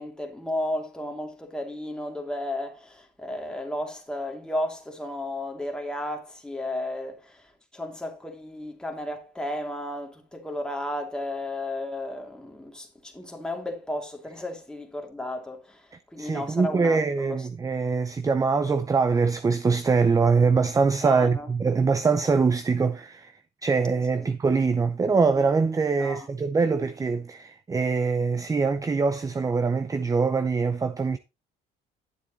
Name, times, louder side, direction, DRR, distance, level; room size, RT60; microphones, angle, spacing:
voice 1, 0.0-17.5 21.0-21.5 24.1-24.3 26.0-26.3, left 1 dB, 5° left, 2.7 m, -34 dB
voice 2, 16.2-23.3 23.6-31.2, right 4 dB, 20° right, 0.6 m, -23 dB
10.5 x 7.3 x 4.0 m
cardioid pair, 110°, 17 cm